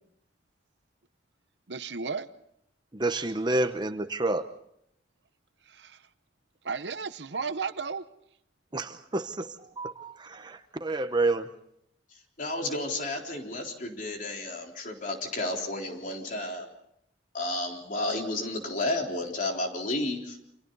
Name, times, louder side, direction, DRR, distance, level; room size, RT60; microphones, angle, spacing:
voice 1, 1.7-2.3 5.7-6.0 6.6-8.0, right 5 dB, 75° right, 13 dB, 0.9 m, -34 dB
voice 2, 2.9-4.4 8.7-11.5, right 2 dB, 25° right, 9 dB, 0.9 m, -29 dB
voice 3, 12.1-16.7 17.3-20.4, left 2 dB, 50° left, 1 dB, 3.8 m, -32 dB
29.0 x 26.0 x 4.0 m, 0.75 s
head